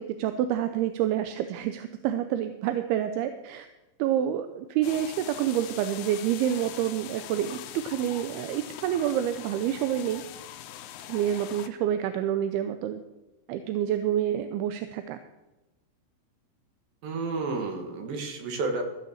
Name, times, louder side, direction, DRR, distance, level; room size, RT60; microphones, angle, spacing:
voice 1, 0.0-3.7 4.0-7.6 7.8-10.2 11.1-13.0 13.5-15.2, right 10 dB, 80° right, 9 dB, 2.5 m, -28 dB
sound 1, 4.8-11.7, left 11 dB, 90° left, 1.9 m, -42 dB
voice 2, 17.0-18.8, right 3 dB, 65° right, 4 dB, 3.2 m, -31 dB
15.0 x 6.6 x 7.2 m, 1.0 s
omnidirectional pair, 4.8 m